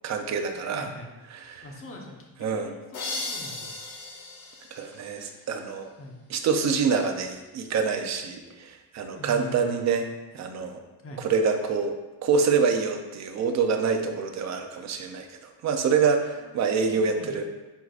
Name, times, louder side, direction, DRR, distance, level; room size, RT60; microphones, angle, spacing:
voice 1, 0.0-0.9 1.3-1.7 2.4-2.7 4.7-5.9 6.3-10.1 10.3-10.8 11.2-11.9 12.2-17.4, right 5 dB, 40° right, 5 dB, 0.6 m, -26 dB
voice 2, 0.7-1.1 1.6-2.8 3.1-3.7 6.0-6.2 9.1-9.8 11.0-11.3 16.4-17.4, left 1 dB, 30° left, 0 dB, 1.0 m, -43 dB
sound 1, 2.9-5.7, left 3 dB, 85° left, 2.2 m, -37 dB
9.2 x 4.7 x 2.5 m, 1.1 s
cardioid pair, 170°, 45 cm